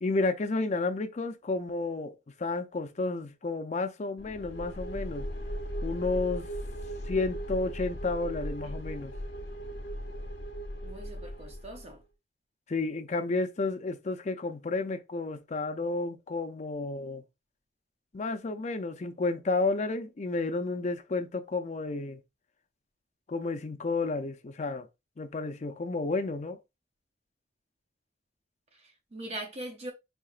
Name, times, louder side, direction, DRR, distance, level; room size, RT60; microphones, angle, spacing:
voice 1, 0.0-2.1 2.4-5.3 5.8-6.4 7.1-9.1 12.7-17.2 18.1-22.2 23.3-24.9 25.2-26.6, left 3 dB, 40° left, 0.5 m, -31 dB
sound 1, 4.2-11.9, equal, 65° left, 1.1 m, -38 dB
voice 2, 10.8-12.0 28.7-29.9, right 1 dB, 35° right, 0.6 m, -41 dB
4.5 x 2.8 x 2.4 m
head